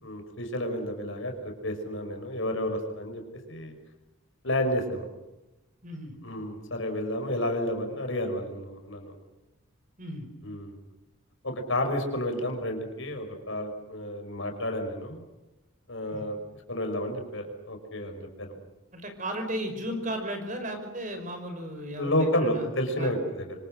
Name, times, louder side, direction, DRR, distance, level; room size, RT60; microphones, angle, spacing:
voice 1, 0.0-3.2 3.5-3.8 4.4-5.0 6.2-9.1 10.4-10.7 11.4-15.2 15.9-16.4 16.7-18.5 22.0-23.5, left 1 dB, 65° left, 4 dB, 5.6 m, -31 dB
voice 2, 5.8-6.1 10.0-10.3 16.1-16.2 18.9-22.7 23.0-23.1, right 1 dB, 35° right, 6 dB, 5.2 m, -35 dB
27.5 x 25.5 x 6.4 m, 0.98 s
head